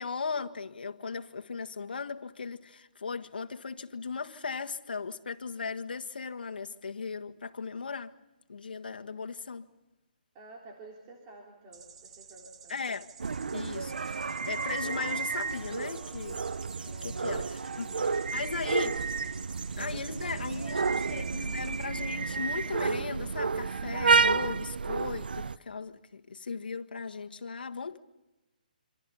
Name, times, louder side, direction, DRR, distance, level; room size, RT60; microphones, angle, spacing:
voice 1, 0.0-8.1 8.5-9.7 12.7-13.1 13.5-16.4 16.9-17.9 18.3-19.1 19.8-28.0, left 5 dB, 85° left, 1.7 m, -37 dB
voice 2, 10.3-12.8 16.8-17.3 19.8-21.3, right 2 dB, 20° right, 3.2 m, -50 dB
sound 1, 11.7-21.8, right 6 dB, 40° right, 1.7 m, -52 dB
sound 2, 13.2-25.6, right 5 dB, 90° right, 0.7 m, -31 dB
sound 3, 14.5-20.3, left 19 dB, 30° left, 1.2 m, -56 dB
27.0 x 26.5 x 5.6 m
hypercardioid pair, 165°, 5 cm